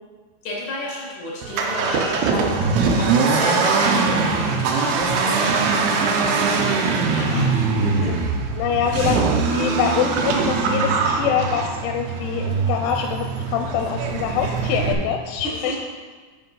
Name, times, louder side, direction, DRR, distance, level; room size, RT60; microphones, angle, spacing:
voice 1, 0.4-2.5 2.8-8.1 8.9-9.3 15.4-15.8, left 2 dB, 55° left, -4 dB, 2.1 m, -32 dB
Accelerating revving vroom, 1.4-14.9, right 4 dB, 85° right, 2.3 m, -22 dB
voice 2, 8.5-9.2 9.5-15.8, left 8 dB, 85° left, 4 dB, 2.9 m, -25 dB
8.1 x 4.6 x 5.4 m, 1.4 s
omnidirectional pair, 5.6 m